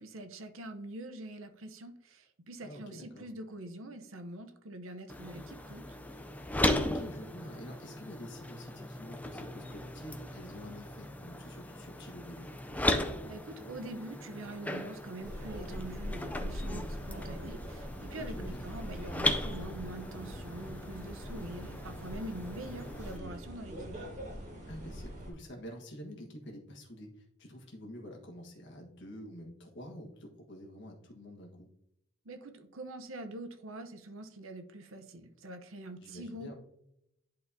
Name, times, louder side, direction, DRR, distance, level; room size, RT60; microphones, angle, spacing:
voice 1, 0.0-5.9 13.2-24.0 32.2-36.5, right 1 dB, 80° right, 8 dB, 0.8 m, -44 dB
voice 2, 2.6-3.3 6.6-12.5 18.1-18.7 24.7-27.1 27.4-31.7 36.0-36.5, equal, 60° left, 1 dB, 1.4 m, -47 dB
sound 1, 5.1-23.2, left 1 dB, 10° left, 0.4 m, -37 dB
sound 2, 15.2-25.3, equal, 35° right, 2.1 m, -42 dB
10.5 x 4.2 x 2.7 m, 0.81 s
head